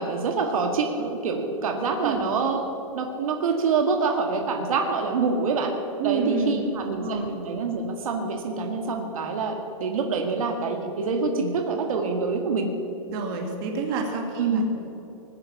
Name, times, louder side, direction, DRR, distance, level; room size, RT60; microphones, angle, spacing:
voice 1, 0.0-2.6 2.9-5.8 6.0-12.7 14.4-14.6, right 4 dB, 80° right, 3 dB, 2.0 m, -26 dB
voice 2, 6.0-7.3 13.1-14.6, right 4 dB, 40° right, 2 dB, 2.4 m, -28 dB
20.0 x 10.0 x 7.1 m, 2.9 s
hypercardioid pair, 155°, 18 cm